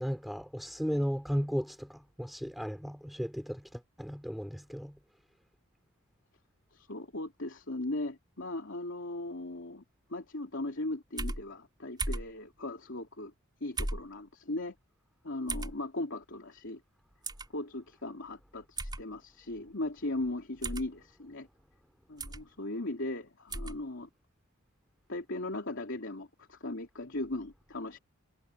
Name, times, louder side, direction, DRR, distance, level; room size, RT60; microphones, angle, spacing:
voice 1, 0.0-5.0, equal, ahead, 6.2 m, -35 dB
voice 2, 6.7-9.8 10.1-13.3 13.6-14.7 15.2-16.8 17.5-21.5 22.1-24.1 25.1-28.0, left 2 dB, 65° left, 3.2 m, -38 dB
sound 1, 11.2-11.4 12.0-12.3 13.8-14.1 15.5-15.7 17.2-17.5 18.8-19.0 20.6-20.9 22.2-22.4 23.5-23.8, right 2 dB, 20° right, 4.3 m, -35 dB
head